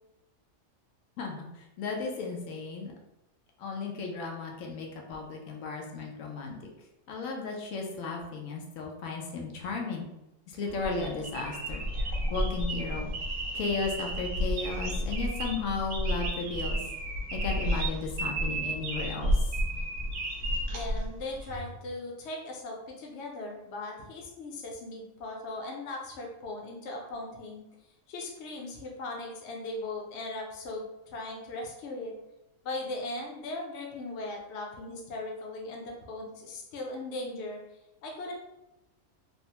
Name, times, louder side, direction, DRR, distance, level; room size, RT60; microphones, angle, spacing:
voice 1, 1.2-2.9 3.6-6.7 7.1-10.1 10.5-11.8 12.3-13.1 13.5-16.8 17.3-19.5, left 4 dB, 90° left, 0 dB, 1.0 m, -35 dB
sound 1, 10.7-21.6, equal, 60° right, 0.6 m, -32 dB
voice 2, 20.7-27.6 28.1-32.1 32.6-37.6 38.0-38.3, left 2 dB, 65° left, 0 dB, 0.9 m, -38 dB
3.3 x 2.0 x 2.8 m, 0.92 s
omnidirectional pair, 1.3 m